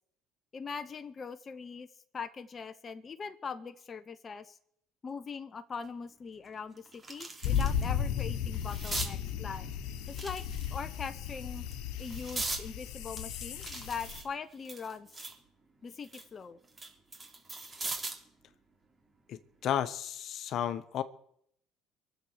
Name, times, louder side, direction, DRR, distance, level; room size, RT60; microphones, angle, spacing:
voice 1, 0.5-1.9 2.1-4.6 5.0-9.7 10.1-10.4 10.7-11.7 12.0-15.1 15.8-16.6, left 5 dB, 35° left, 9 dB, 0.9 m, -41 dB
sound 1, 5.8-5.9 6.4-7.9 8.2-9.1 10.1-11.0 11.6-12.6 13.2-15.4 15.8-18.3 19.7-19.9, right 2 dB, 25° right, 3.3 m, -40 dB
sound 2, 7.4-14.2, left 8 dB, 80° left, 1.4 m, -35 dB
voice 2, 19.3-21.0, left 10 dB, 60° left, 12 dB, 1.0 m, -33 dB
23.0 x 7.8 x 6.7 m, 0.68 s
supercardioid pair, 80°, 0 cm